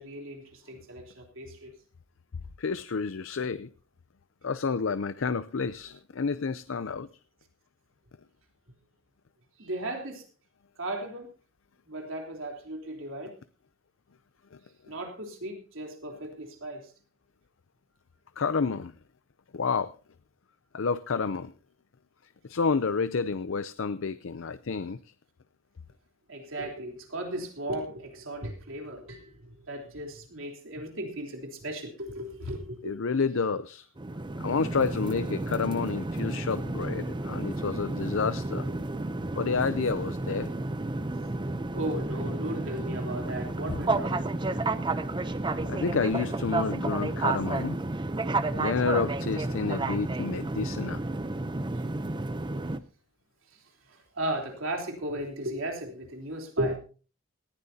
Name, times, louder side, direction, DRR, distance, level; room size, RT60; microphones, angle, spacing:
voice 1, 0.0-1.7 9.6-10.2 10.8-11.3 11.8-13.3 14.9-16.9 26.3-33.0 39.8-39.9 41.7-44.2 53.9-56.8, right 1 dB, 75° right, 2 dB, 3.6 m, -36 dB
voice 2, 2.6-3.7 4.4-7.1 18.4-18.9 19.5-19.9 20.7-21.5 22.5-25.0 32.8-33.8 34.4-38.7 39.4-40.5 45.5-47.8 48.5-51.0, left 5 dB, 70° left, 14 dB, 0.6 m, -29 dB
sound 1, 34.0-52.8, right 2 dB, 20° right, 0.6 m, -31 dB
19.0 x 15.0 x 2.8 m, 0.37 s
head